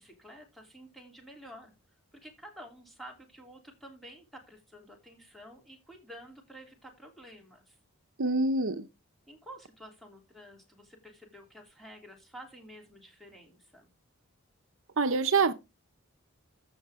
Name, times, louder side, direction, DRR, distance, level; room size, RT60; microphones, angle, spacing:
voice 1, 0.0-1.7 2.1-7.8 9.3-13.9, equal, ahead, 3.1 m, -50 dB
voice 2, 8.2-8.9 15.0-15.5, right 4 dB, 65° right, 0.7 m, -25 dB
14.0 x 6.5 x 3.6 m
head